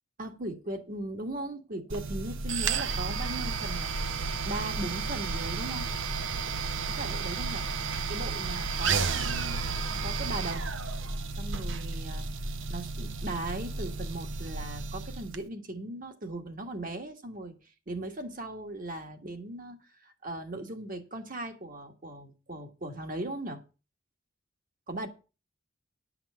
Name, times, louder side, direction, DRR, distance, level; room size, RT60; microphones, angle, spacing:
voice 1, 0.2-4.2 4.4-5.9 6.9-7.6 8.1-9.6 10.0-10.8 11.4-12.3 12.7-23.6 24.9-25.1, right 1 dB, 45° right, 1.7 m, -38 dB
sound 1, 1.9-15.4, right 4 dB, 65° right, 0.9 m, -32 dB
11.0 x 5.9 x 6.9 m
head